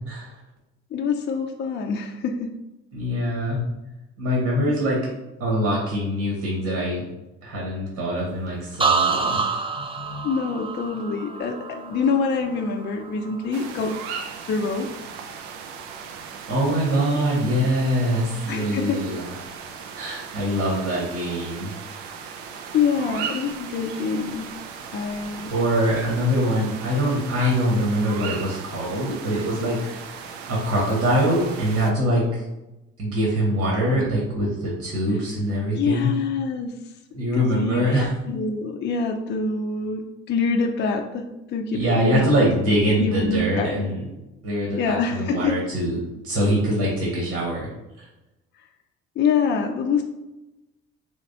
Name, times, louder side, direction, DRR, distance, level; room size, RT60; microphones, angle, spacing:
voice 1, 0.9-2.5 9.3-9.4 9.8-13.9 14.5-14.9 18.5-19.0 22.7-24.5 24.9-25.5 35.7-36.8 37.3-42.3 43.0-43.8 44.8-45.6 49.2-50.0, left 5 dB, 35° left, 3 dB, 0.4 m, -25 dB
voice 2, 2.9-3.6 4.2-5.0 5.4-7.0 7.4-9.4 16.5-19.3 19.9-21.8 25.5-29.9 30.5-32.4 33.0-36.1 37.1-38.1 41.7-44.1 44.4-47.7 48.0-48.1, equal, 60° right, -4 dB, 1.3 m, -23 dB
sound 1, 8.8-12.6 13.0-13.5, right 5 dB, 15° right, 0.5 m, -26 dB
sound 2, 13.5-31.9, right 6 dB, 80° right, 0.5 m, -37 dB
3.5 x 2.9 x 2.7 m, 0.98 s
hypercardioid pair, 55°, 31 cm